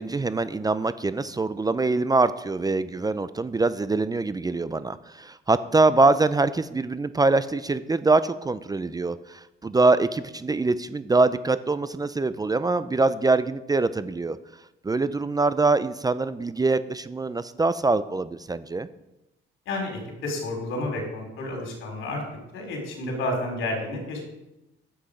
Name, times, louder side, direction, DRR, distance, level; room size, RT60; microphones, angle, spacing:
voice 1, 0.0-14.4 14.8-18.9, right 3 dB, 20° right, 14 dB, 0.5 m, -24 dB
voice 2, 19.7-22.2 22.5-24.2, left 2 dB, 80° left, 1 dB, 3.6 m, -30 dB
10.0 x 7.9 x 5.0 m, 0.94 s
cardioid pair, 90°, 20 cm